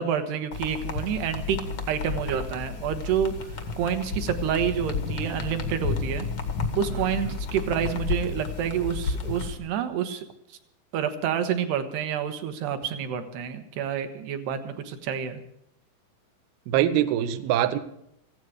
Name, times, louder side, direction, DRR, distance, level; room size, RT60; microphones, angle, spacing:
voice 1, 0.0-1.6 1.9-6.3 6.8-10.2 10.5-10.6 10.9-15.4, right 8 dB, 65° right, 8 dB, 3.1 m, -28 dB
sound 1, 0.5-9.5, left 5 dB, 90° left, 1.0 m, -32 dB
voice 2, 16.7-17.8, right 11 dB, 90° right, 10 dB, 2.1 m, -23 dB
18.0 x 16.0 x 4.9 m, 0.76 s
omnidirectional pair, 5.8 m